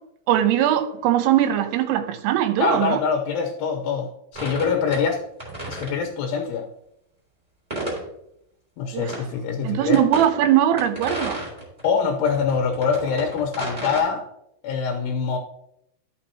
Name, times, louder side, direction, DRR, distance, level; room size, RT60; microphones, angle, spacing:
voice 1, 0.3-3.0 8.9-9.1 9.6-11.4, right 11 dB, 85° right, 2.9 m, -20 dB
voice 2, 2.6-5.2 5.7-6.7 8.8-10.0 11.8-14.2 14.6-15.4, left 6 dB, 85° left, 2.9 m, -24 dB
sound 1, 4.3-5.1 5.4-5.9 7.7-8.0 9.1-9.2 9.9-10.3 10.8-11.9 12.2-14.0, right 1 dB, 10° right, 2.7 m, -32 dB
13.5 x 5.9 x 2.9 m
omnidirectional pair, 4.7 m